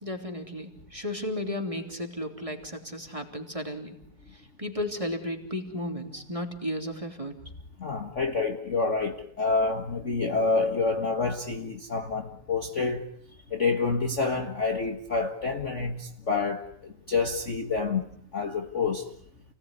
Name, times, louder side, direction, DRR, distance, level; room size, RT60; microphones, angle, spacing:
voice 1, 0.0-4.0 4.3-7.3, left 1 dB, 10° right, 2.9 m, -34 dB
voice 2, 7.8-13.0 13.5-18.0 18.3-19.1, left 4 dB, 45° left, 0.9 m, -28 dB
29.5 x 19.5 x 9.8 m
omnidirectional pair, 3.9 m